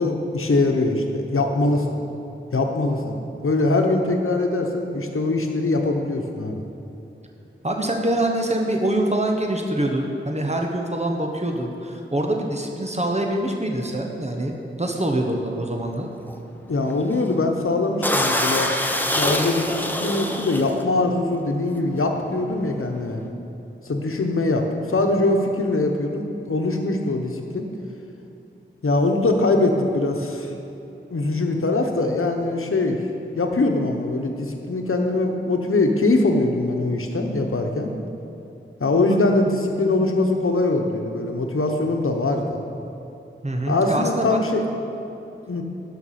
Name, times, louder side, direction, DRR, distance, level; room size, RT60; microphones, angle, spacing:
voice 1, 0.0-1.9 2.5-3.2 3.4-6.6 16.7-18.7 19.1-23.2 23.8-27.7 28.8-30.5 31.1-33.0 33.4-37.9 38.8-42.6 43.7-44.6 45.5-45.6, left 2 dB, 85° left, 3 dB, 0.9 m, -22 dB
voice 2, 7.6-14.5 14.8-16.1 43.4-44.4, right 1 dB, 30° right, 1 dB, 1.1 m, -24 dB
sound 1, 15.0-15.3 15.7-15.9 16.2-16.4 16.9-17.2 17.6-17.7 18.0-20.8 21.6-21.8 22.0-23.2, left 1 dB, 10° left, 0.9 m, -25 dB
11.0 x 5.9 x 5.8 m, 2.8 s
wide cardioid pair, 40°, 21 cm